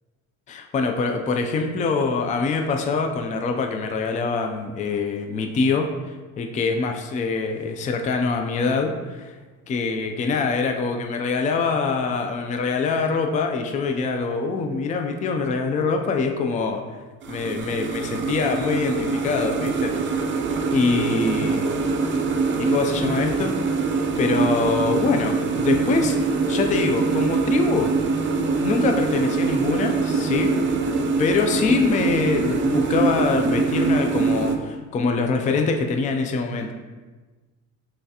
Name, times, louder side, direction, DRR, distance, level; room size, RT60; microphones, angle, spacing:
voice 1, 0.5-9.3 9.7-16.8 17.3-20.2 20.7-21.7 22.6-23.6 24.2-26.2 26.5-27.9 28.6-30.6 31.2-36.7, left 4 dB, 20° left, 4 dB, 0.3 m, -24 dB
sound 1, 17.2-34.6, right 4 dB, 35° right, 0.5 m, -23 dB
5.6 x 3.2 x 2.8 m, 1.3 s
cardioid pair, 130°, 35 cm